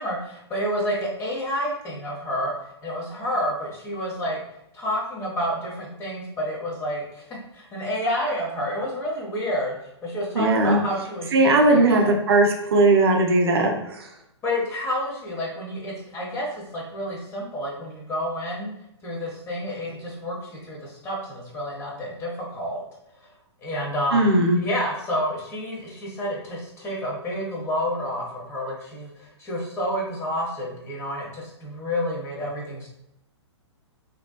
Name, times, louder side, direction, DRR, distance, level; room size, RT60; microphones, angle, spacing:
voice 1, 0.0-2.5 2.8-4.4 4.7-7.3 7.5-9.8 10.0-12.1 14.4-18.7 19.0-22.8 23.2-23.3 23.6-32.9, equal, 15° left, -3 dB, 0.7 m, -29 dB
voice 2, 10.3-10.8 11.3-14.1 24.1-24.6, right 2 dB, 55° right, 3 dB, 0.5 m, -18 dB
2.7 x 2.1 x 2.3 m, 0.78 s
figure-of-eight pair, 115°, 15 cm